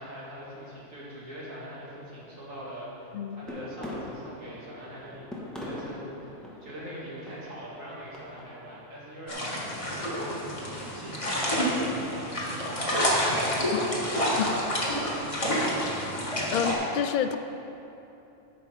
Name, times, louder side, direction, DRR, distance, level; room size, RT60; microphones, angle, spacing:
voice 1, 0.0-6.3 6.6-12.7, equal, 85° right, -7 dB, 2.8 m, -43 dB
voice 2, 3.1-3.5 13.7-13.8 14.4-14.5 15.6-15.7 16.5-17.4, left 8 dB, 70° left, 9 dB, 0.4 m, -29 dB
sound 1, 3.5-8.8, left 1 dB, ahead, 1.4 m, -41 dB
sound 2, 9.3-16.7, equal, 25° left, 1.7 m, -28 dB
13.0 x 6.1 x 5.0 m, 3.0 s
omnidirectional pair, 1.3 m